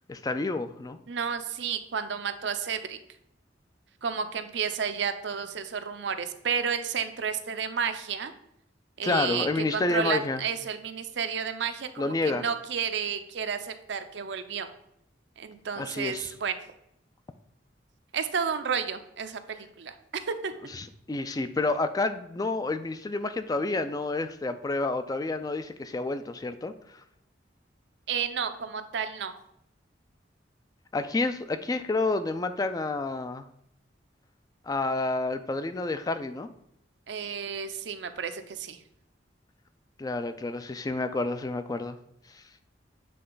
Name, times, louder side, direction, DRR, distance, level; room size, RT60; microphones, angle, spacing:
voice 1, 0.1-1.0 9.0-10.4 12.0-12.4 15.8-16.3 20.7-27.0 30.9-33.5 34.6-36.5 40.0-42.0 42.3-42.4, left 3 dB, 20° left, 10 dB, 0.3 m, -29 dB
voice 2, 1.1-3.0 4.0-8.3 9.0-9.5 9.7-14.7 15.4-16.6 18.1-20.7 28.1-29.4 37.1-38.8, right 6 dB, 70° right, 9 dB, 0.5 m, -31 dB
7.7 x 3.4 x 3.8 m, 0.76 s
head